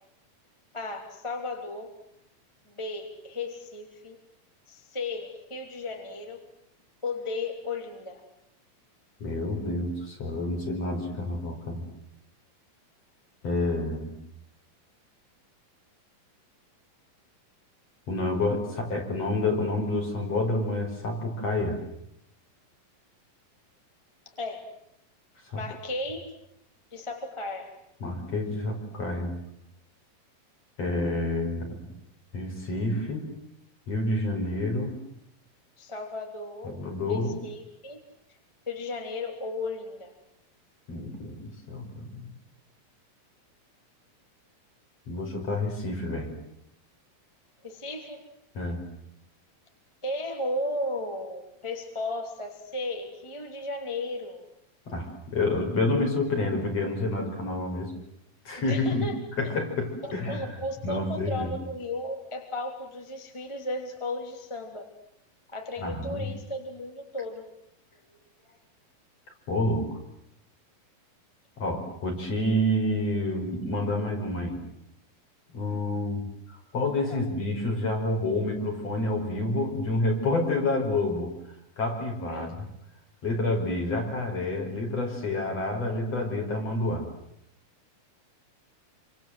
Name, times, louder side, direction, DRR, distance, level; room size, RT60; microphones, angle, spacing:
voice 1, 0.7-1.9 2.7-4.2 4.7-6.5 7.0-8.2 24.4-24.7 25.6-26.2 26.9-27.7 35.8-36.8 37.1-38.0 38.7-40.1 47.6-48.2 50.0-54.4 58.6-59.2 59.4-59.6 60.0-64.8 65.5-67.5 77.1-77.2 82.3-82.5, left 2 dB, 10° left, 3 dB, 2.9 m, -35 dB
voice 2, 9.2-11.9 13.4-14.1 18.1-21.8 25.5-25.6 28.0-29.4 30.8-31.7 32.3-33.3 33.9-34.9 36.6-37.4 40.9-42.3 45.1-46.3 48.5-48.8 54.9-57.9 58.4-59.0 59.4-60.5 60.8-61.5 65.8-66.3 69.5-69.9 71.6-74.6 75.5-81.3 81.8-82.7 83.2-87.1, left 2 dB, 45° left, 2 dB, 6.4 m, -28 dB
28.0 x 26.5 x 7.9 m, 0.77 s
omnidirectional pair, 4.1 m